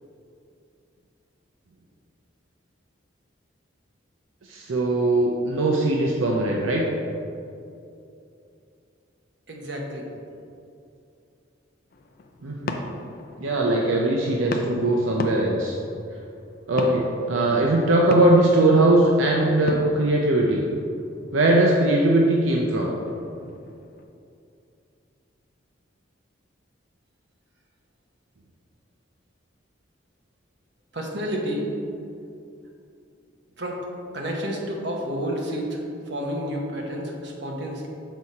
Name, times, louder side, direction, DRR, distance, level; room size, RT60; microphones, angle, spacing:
voice 1, 4.5-6.8 12.4-12.8 13.4-15.7 16.7-20.6 21.3-22.9, right 2 dB, 80° right, -2 dB, 0.6 m, -20 dB
voice 2, 9.5-10.1 30.9-31.7 33.6-33.9 34.1-37.9, equal, 55° right, -1 dB, 1.0 m, -30 dB
sound 1, 11.9-24.0, left 2 dB, 45° left, 0.4 m, -37 dB
6.1 x 4.1 x 4.8 m, 2.6 s
head